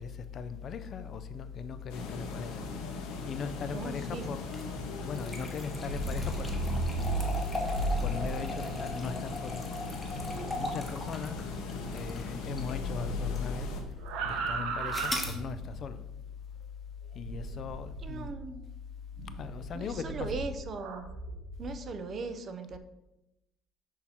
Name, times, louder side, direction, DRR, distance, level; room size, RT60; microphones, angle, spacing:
voice 1, 0.0-2.6 2.9-4.5 5.0-6.5 8.0-9.6 10.5-11.4 11.9-13.7 14.2-16.0 17.1-18.3 19.4-20.4, left 6 dB, 45° left, 0.4 m, -38 dB
sound 1, 1.9-13.8, left 3 dB, 85° left, 1.1 m, -40 dB
voice 2, 3.7-4.2 18.0-18.6 19.7-21.1 21.6-22.8, right 4 dB, 40° right, 0.5 m, -38 dB
sound 2, 4.4-12.8 13.4-13.5 14.9-15.4, left 1 dB, 5° left, 1.0 m, -39 dB
sound 3, 5.7-12.2 12.4-15.8 17.2-18.5 19.2-21.8, right 1 dB, 75° right, 0.8 m, -36 dB
6.4 x 2.8 x 5.6 m
cardioid pair, 130°, 0 cm